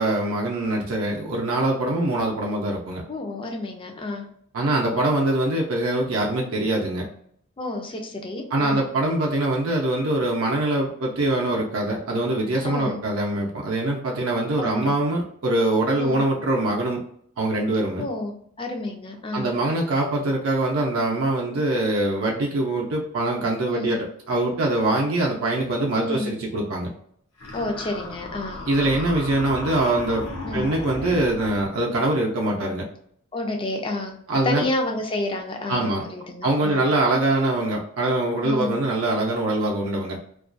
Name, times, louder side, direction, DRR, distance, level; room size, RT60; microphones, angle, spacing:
voice 1, 0.0-3.0 4.5-7.0 8.5-17.0 17.4-18.0 19.3-26.9 28.7-32.9 34.3-34.6 35.7-36.0 36.4-40.2, right 2 dB, 70° right, -1 dB, 0.5 m, -23 dB
voice 2, 3.1-4.3 7.6-8.8 12.6-13.0 14.6-15.0 16.0-16.2 18.0-19.5 23.7-24.0 25.9-26.3 27.5-28.6 30.4-30.7 33.3-34.2 34.4-36.9 38.4-38.7, left 2 dB, 25° left, 3 dB, 0.4 m, -30 dB
sound 1, 27.4-31.7, left 2 dB, 70° left, 0.7 m, -35 dB
2.3 x 2.2 x 2.5 m, 0.65 s
head